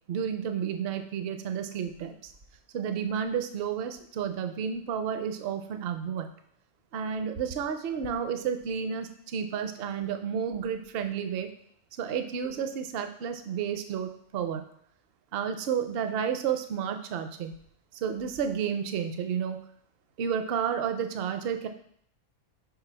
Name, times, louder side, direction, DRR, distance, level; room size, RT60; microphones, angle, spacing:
voice 1, 0.1-2.3 2.7-6.3 6.9-11.5 12.0-14.6 15.3-17.5 17.9-19.6 20.2-21.7, right 7 dB, 60° right, 8 dB, 0.7 m, -31 dB
4.6 x 4.0 x 5.5 m, 0.65 s
omnidirectional pair, 1.3 m